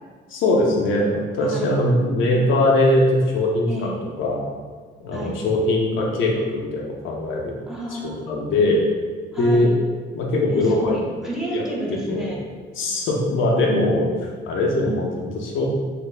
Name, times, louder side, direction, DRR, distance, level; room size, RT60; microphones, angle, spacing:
voice 1, 0.3-3.9 4.2-4.4 5.0-7.6 7.9-8.8 9.4-9.8 10.1-10.9 11.5-11.6 12.1-12.3 12.8-14.1 14.5-15.7, left 1 dB, 80° left, -2 dB, 0.6 m, -21 dB
voice 2, 1.4-1.7 3.7-4.0 5.1-5.4 7.7-8.2 9.3-9.7 10.5-12.4 14.7-15.2, right 1 dB, ahead, -4 dB, 0.8 m, -31 dB
2.7 x 2.4 x 3.2 m, 1.5 s
cardioid pair, 90°, 20 cm